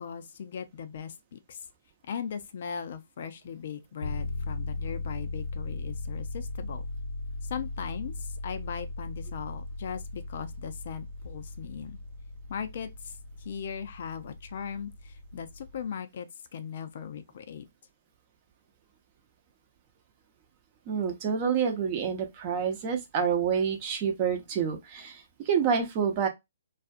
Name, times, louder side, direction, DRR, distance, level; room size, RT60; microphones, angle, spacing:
voice 1, 0.0-1.7 2.1-6.8 7.4-12.0 12.5-13.1 13.4-16.3 16.5-17.7, left 7 dB, 55° left, 0.4 m, -38 dB
sound 1, 4.0-15.9, left 2 dB, 90° left, 0.9 m, -38 dB
voice 2, 20.9-26.3, right 7 dB, 35° right, 0.7 m, -28 dB
2.4 x 2.3 x 2.5 m
hypercardioid pair, 145°, 0 cm